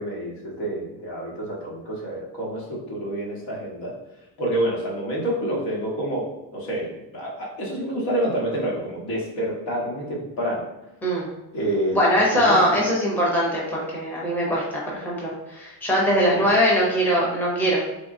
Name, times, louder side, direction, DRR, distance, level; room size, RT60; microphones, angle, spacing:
voice 1, 0.0-3.9 4.4-10.7 11.5-12.8 16.1-16.5, right 1 dB, 80° left, -3 dB, 1.4 m, -28 dB
voice 2, 11.9-17.8, equal, 5° left, -5 dB, 0.6 m, -21 dB
3.7 x 3.4 x 2.6 m, 0.99 s
cardioid pair, 175°, 42 cm